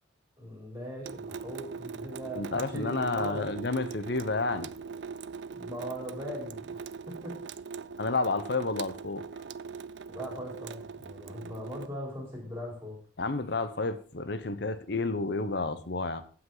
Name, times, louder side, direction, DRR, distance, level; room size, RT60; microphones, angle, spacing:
voice 1, 0.4-3.5 5.5-6.8 7.1-7.4 10.1-13.0, equal, 10° right, -1 dB, 4.2 m, -40 dB
Water tap faucet / Sink (filling or washing) / Drip, 1.0-11.9, right 5 dB, 60° right, 0.4 m, -41 dB
voice 2, 2.4-4.7 8.0-9.2 13.2-16.2, left 3 dB, 55° left, 11 dB, 0.9 m, -30 dB
15.0 x 6.0 x 3.9 m, 0.41 s
head